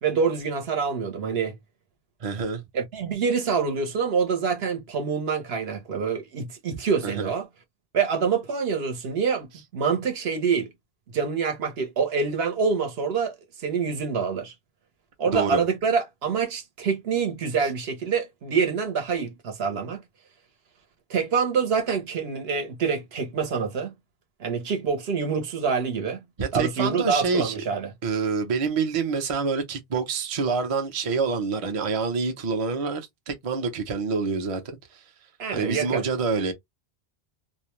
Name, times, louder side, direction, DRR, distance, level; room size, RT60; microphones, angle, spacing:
voice 1, 0.0-1.6 2.7-7.5 7.9-10.7 11.1-14.5 15.2-20.0 21.1-23.9 24.4-26.2 26.5-27.9 35.4-36.0, right 5 dB, 70° right, 1.0 m, -26 dB
voice 2, 2.2-2.6 7.0-7.3 15.3-15.6 26.4-27.5 28.0-35.0 35.5-36.5, right 4 dB, 40° right, 0.6 m, -27 dB
2.5 x 2.1 x 2.9 m
omnidirectional pair, 1.1 m